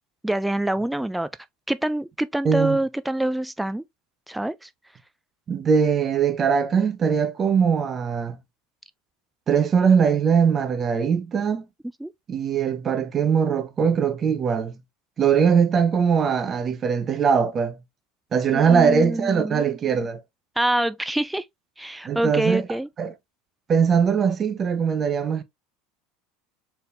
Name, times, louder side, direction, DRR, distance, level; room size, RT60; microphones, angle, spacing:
voice 1, 0.2-1.3 1.7-3.8 4.3-4.7 12.0-12.1 18.5-19.6 20.6-21.4 21.8-22.9, right 1 dB, 5° right, 0.3 m, -25 dB
voice 2, 2.4-2.8 5.5-8.4 9.5-11.7 12.3-14.7 15.2-17.8 18.3-20.2 22.0-22.6 23.0-23.1 23.7-25.4, right 6 dB, 35° right, 0.8 m, -21 dB
4.3 x 3.5 x 2.5 m
hypercardioid pair, 95°, 0 cm